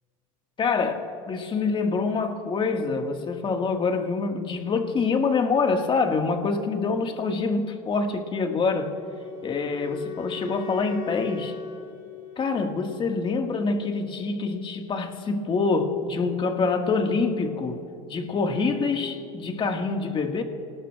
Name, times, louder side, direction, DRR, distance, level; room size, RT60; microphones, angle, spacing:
voice 1, 0.6-8.9 9.4-11.6 12.4-17.8 18.1-20.4, left 4 dB, 30° left, 4 dB, 1.9 m, -26 dB
Wind instrument woodwind instrument, 8.9-13.0, left 6 dB, 45° left, 3.2 m, -39 dB
29.0 x 19.5 x 2.5 m, 2.6 s
supercardioid pair, 105°, 17 cm